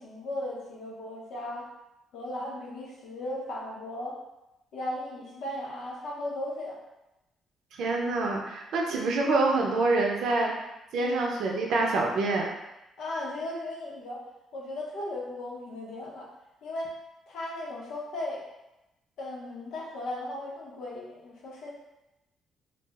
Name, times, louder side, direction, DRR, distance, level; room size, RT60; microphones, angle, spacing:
voice 1, 0.0-1.7 2.1-4.1 4.7-6.8 11.0-11.1 13.0-14.3 14.5-16.3 16.6-16.9 17.3-18.4 19.2-21.7, left 1 dB, 75° left, -4 dB, 0.8 m, -36 dB
voice 2, 7.7-10.5 10.9-12.5, right 3 dB, 75° right, 0 dB, 0.5 m, -26 dB
2.4 x 2.0 x 3.4 m, 0.94 s
cardioid pair, 90°, 0 cm